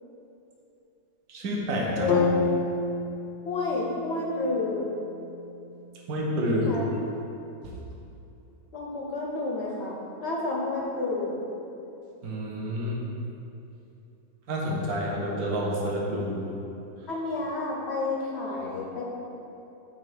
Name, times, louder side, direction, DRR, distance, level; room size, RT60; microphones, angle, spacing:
voice 1, 1.3-2.1 6.1-6.7 12.2-13.0 14.5-16.5, equal, 55° right, -3 dB, 1.3 m, -28 dB
voice 2, 2.0-2.3 3.4-4.8 6.6-6.9 8.7-11.4 17.1-19.0, left 2 dB, 60° left, -3 dB, 0.7 m, -30 dB
sound 1, 2.1-6.2, left 4 dB, 80° left, 1.3 m, -30 dB
7.5 x 2.8 x 5.1 m, 2.8 s
omnidirectional pair, 2.0 m